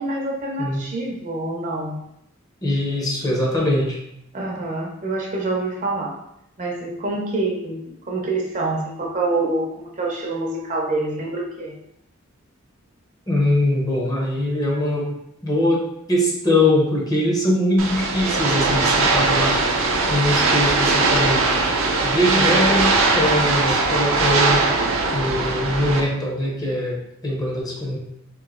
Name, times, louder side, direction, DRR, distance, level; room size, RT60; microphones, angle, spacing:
voice 1, 0.0-2.0 4.3-6.2 6.6-11.8, right 2 dB, 40° right, -1 dB, 0.6 m, -26 dB
voice 2, 2.6-4.0 13.3-15.2 15.4-15.8 16.1-19.7 20.1-21.5 22.0-24.7 25.1-28.0, left 1 dB, 20° left, -3 dB, 0.8 m, -22 dB
sound 1, 17.8-26.0, right 3 dB, 85° right, 0.5 m, -20 dB
3.0 x 2.7 x 3.7 m, 0.80 s
head